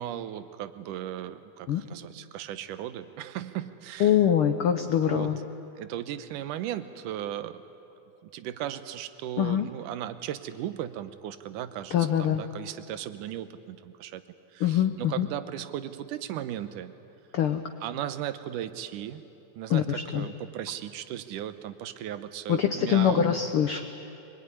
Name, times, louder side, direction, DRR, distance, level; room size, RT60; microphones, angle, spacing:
voice 1, 0.0-4.2 4.9-5.3 5.8-7.6 8.2-14.2 14.5-16.9 17.8-19.2 19.6-23.4, right 11 dB, 80° right, 12 dB, 2.4 m, -36 dB
voice 2, 4.0-5.4 9.4-9.7 11.9-12.4 14.6-15.3 17.3-17.6 19.7-20.3 22.5-23.8, left 9 dB, 80° left, 7 dB, 1.2 m, -24 dB
24.0 x 21.5 x 9.8 m, 2.8 s
omnidirectional pair, 3.7 m